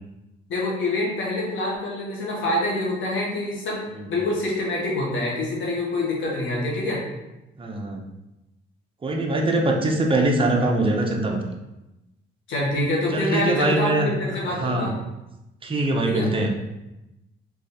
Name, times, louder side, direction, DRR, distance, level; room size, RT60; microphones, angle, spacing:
voice 1, 0.5-7.0 12.5-15.0 16.1-16.3, left 1 dB, 75° left, -3 dB, 1.6 m, -26 dB
voice 2, 3.9-4.2 7.6-8.0 9.0-11.4 13.1-14.1 14.6-14.9 15.6-16.5, right 2 dB, 25° right, 1 dB, 0.8 m, -23 dB
3.6 x 3.2 x 4.3 m, 0.95 s
cardioid pair, 90°, 20 cm